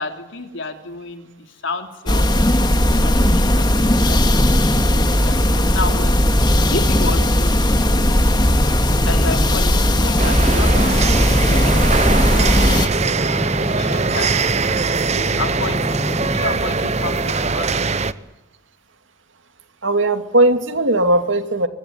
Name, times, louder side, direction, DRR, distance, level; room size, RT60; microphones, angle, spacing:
voice 1, 0.0-6.2 6.4-7.6 9.0-12.1 12.6-12.9 13.2-14.3 15.1-18.0, left 3 dB, 70° left, 5 dB, 3.4 m, -31 dB
sound 1, 2.1-12.9, left 1 dB, 20° left, 2.1 m, -16 dB
sound 2, 3.7-17.5, equal, 5° left, 1.9 m, -30 dB
sound 3, 10.2-18.1, right 4 dB, 35° right, 0.9 m, -21 dB
voice 2, 19.8-21.7, right 2 dB, 70° right, 8 dB, 2.5 m, -17 dB
24.5 x 22.5 x 9.6 m, 1.0 s
head